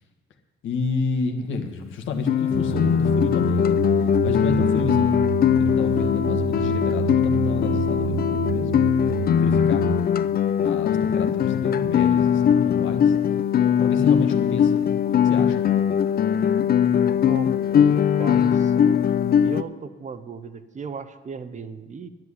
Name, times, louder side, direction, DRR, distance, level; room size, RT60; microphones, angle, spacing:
voice 1, 0.6-5.2 5.6-8.7 9.3-9.9 10.6-13.1 13.8-14.7 15.2-15.6, left 4 dB, 75° left, 5 dB, 1.5 m, -30 dB
Guitar, 2.3-19.6, left 9 dB, 50° left, 0.5 m, -20 dB
sound 1, 2.5-10.1, right 11 dB, 75° right, 0.5 m, -29 dB
voice 2, 17.1-19.0 19.4-22.1, right 5 dB, 35° right, 12 dB, 0.9 m, -36 dB
11.0 x 7.5 x 9.8 m, 1.3 s
cardioid pair, 90°, 20 cm